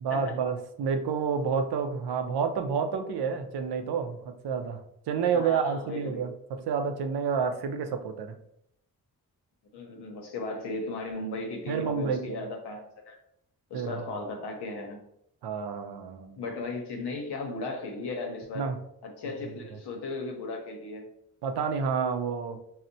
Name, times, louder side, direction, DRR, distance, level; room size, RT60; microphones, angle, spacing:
voice 1, 0.0-8.3 11.7-12.4 13.7-14.1 15.4-16.4 18.5-18.8 21.4-22.6, right 6 dB, 80° right, 7 dB, 0.5 m, -29 dB
voice 2, 5.3-6.2 9.7-13.2 13.7-15.0 16.4-18.7 19.0-21.1, left 2 dB, 90° left, 2 dB, 0.7 m, -36 dB
4.2 x 2.1 x 2.6 m, 0.76 s
cardioid pair, 50°, 39 cm